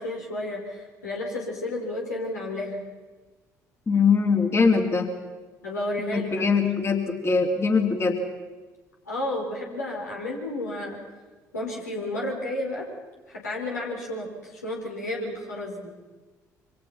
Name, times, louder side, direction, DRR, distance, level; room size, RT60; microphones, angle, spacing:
voice 1, 0.0-2.8 5.6-6.6 9.1-11.0 11.5-12.9 13.3-15.9, left 1 dB, 85° left, -2 dB, 4.9 m, -32 dB
voice 2, 3.9-5.1 6.1-8.2, left 5 dB, 30° left, 3 dB, 3.3 m, -22 dB
27.5 x 25.5 x 5.9 m, 1.3 s
figure-of-eight pair, 55°, 9 cm